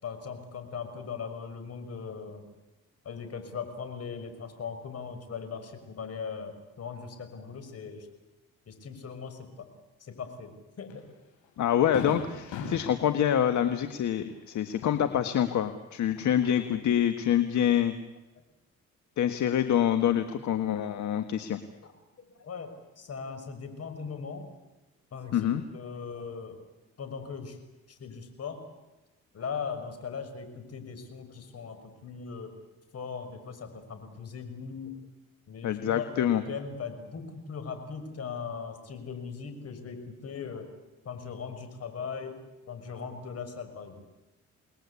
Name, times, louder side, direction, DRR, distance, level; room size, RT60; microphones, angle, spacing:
voice 1, 0.0-2.5 3.0-8.1 8.7-9.7 10.0-11.0 21.8-21.9 22.4-24.5 25.1-26.6 27.0-27.6 27.9-28.6 29.3-32.6 32.9-34.9 35.5-40.7 41.0-42.4 42.7-44.0, left 6 dB, 55° left, 8 dB, 6.2 m, -39 dB
Fireworks, 10.9-11.0 11.4-11.5 11.9-15.7 16.0-16.9, left 4 dB, 85° left, 7.3 m, -41 dB
voice 2, 11.6-17.9 19.2-21.6 25.3-25.6 35.6-36.4, left 10 dB, 70° left, 9 dB, 1.7 m, -26 dB
29.5 x 20.5 x 8.5 m, 1.1 s
cardioid pair, 90°, 30 cm